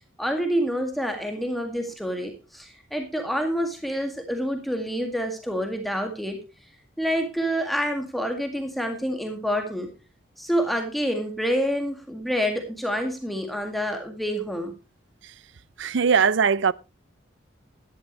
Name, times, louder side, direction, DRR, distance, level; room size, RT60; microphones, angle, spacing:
voice 1, 0.2-6.4 7.0-9.9 10.4-14.7, equal, ahead, 1.9 m, -27 dB
voice 2, 15.8-16.7, right 6 dB, 70° right, 0.5 m, -20 dB
13.5 x 11.5 x 3.1 m
head